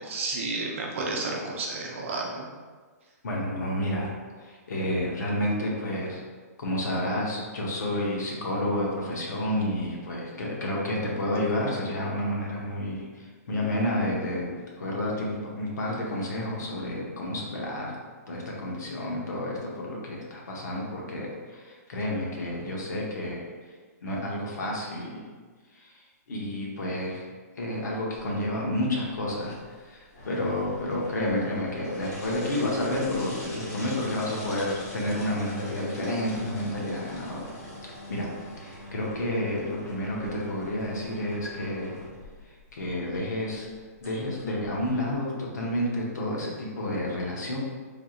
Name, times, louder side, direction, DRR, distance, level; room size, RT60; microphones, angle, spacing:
voice 1, 0.0-2.5, right 3 dB, 50° right, -1 dB, 0.6 m, -31 dB
voice 2, 3.2-4.1 4.4-6.2 6.6-18.0 18.3-23.5 24.0-25.3 25.7-27.2 27.6-37.5 38.1-42.0 42.4-43.7 44.0-47.6, left 1 dB, 80° left, -3 dB, 0.9 m, -30 dB
sound 1, 28.1-45.2, equal, 60° left, 1.3 m, -43 dB
3.4 x 2.8 x 2.4 m, 1.5 s
hypercardioid pair, 170°, 9 cm